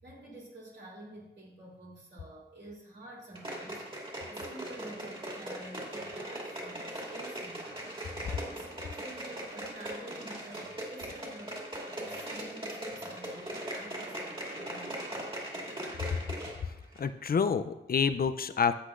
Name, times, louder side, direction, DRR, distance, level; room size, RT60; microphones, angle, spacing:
voice 1, 0.0-11.6 12.0-15.2, right 1 dB, 70° right, -4 dB, 3.1 m, -49 dB
sound 1, 3.3-16.6 16.9-17.0, right 1 dB, 30° right, 2.5 m, -40 dB
voice 2, 17.0-18.7, left 6 dB, 55° left, 11 dB, 0.5 m, -28 dB
12.5 x 8.0 x 2.5 m, 0.95 s
wide cardioid pair, 90°, 18 cm